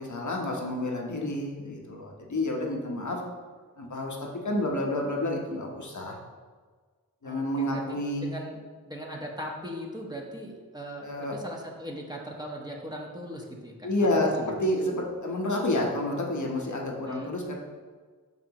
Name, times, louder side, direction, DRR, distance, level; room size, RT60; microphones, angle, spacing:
voice 1, 0.0-3.2 3.8-4.2 4.4-6.2 7.2-8.3 11.0-11.4 13.8-17.5, left 1 dB, 50° left, 0 dB, 1.1 m, -29 dB
voice 2, 7.2-7.8 8.2-8.6 8.9-13.9 14.2-14.5 17.1-17.3, equal, 10° right, -2 dB, 1.2 m, -39 dB
5.9 x 5.6 x 3.0 m, 1.5 s
cardioid pair, 40°, 37 cm